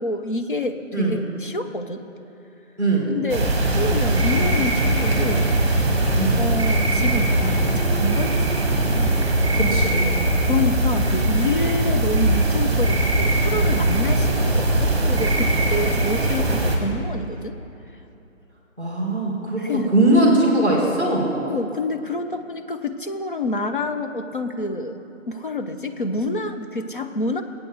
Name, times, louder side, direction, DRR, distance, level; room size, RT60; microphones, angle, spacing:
voice 1, 0.0-2.0 3.1-5.5 6.4-9.4 10.5-17.6 19.6-19.9 21.5-25.0 25.3-27.4, left 2 dB, 40° left, 6 dB, 0.6 m, -27 dB
voice 2, 2.8-3.1 6.2-6.4 9.5-10.2 18.8-21.3, right 1 dB, 10° left, -2 dB, 1.5 m, -20 dB
sound 1, 3.3-16.8, right 1 dB, 20° right, 1.2 m, -20 dB
20.0 x 8.3 x 3.5 m, 2.9 s
figure-of-eight pair, 155°, 40 cm